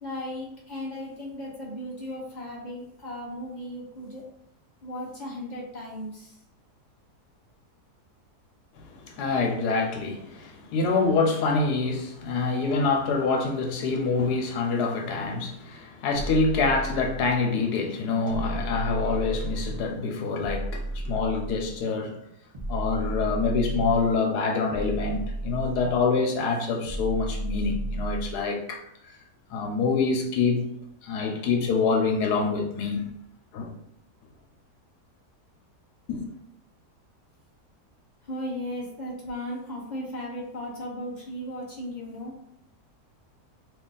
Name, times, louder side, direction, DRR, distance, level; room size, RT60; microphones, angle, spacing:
voice 1, 0.0-4.2 4.8-6.4 38.2-42.3, equal, 40° left, 0.6 m, -36 dB
voice 2, 8.8-22.2 22.7-28.8 29.5-30.6 31.0-33.1 33.5-33.7 36.1-36.3, left 4 dB, 80° left, 1.2 m, -26 dB
sound 1, 16.1-17.4 18.3-19.9 20.4-21.8 22.5-24.2 24.7-26.1 26.8-28.4, right 1 dB, 35° right, 0.8 m, -33 dB
3.2 x 2.5 x 3.7 m
omnidirectional pair, 1.7 m